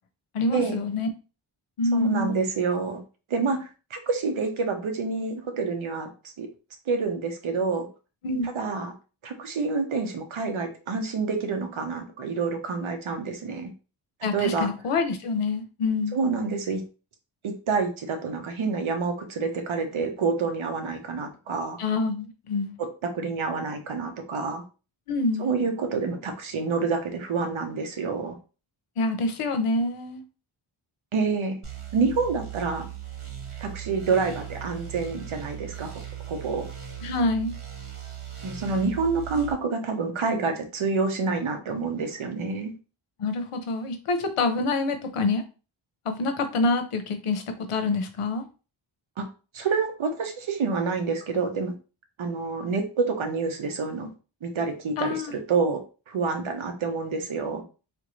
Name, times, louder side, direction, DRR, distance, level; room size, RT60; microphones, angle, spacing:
voice 1, 0.3-1.1 1.8-2.4 8.2-8.5 14.2-16.2 21.8-22.8 25.1-25.5 29.0-30.2 37.0-37.5 43.2-45.4 46.0-48.4 55.0-55.4, left 3 dB, 90° left, 8 dB, 0.8 m, -26 dB
voice 2, 1.9-3.0 3.3-6.1 6.4-6.5 6.9-7.9 8.4-8.9 9.2-13.7 14.3-14.7 16.1-16.8 17.4-21.8 23.0-24.6 25.4-28.4 31.1-31.6 31.9-32.9 33.6-36.7 38.4-42.7 49.2-49.3 49.5-51.7 52.2-54.1 54.4-55.8 56.1-57.6, right 4 dB, 70° right, 5 dB, 0.9 m, -28 dB
sound 1, 31.6-39.5, right 10 dB, 85° right, 1.3 m, -38 dB
3.6 x 2.6 x 3.0 m, 0.34 s
wide cardioid pair, 110°, 50 cm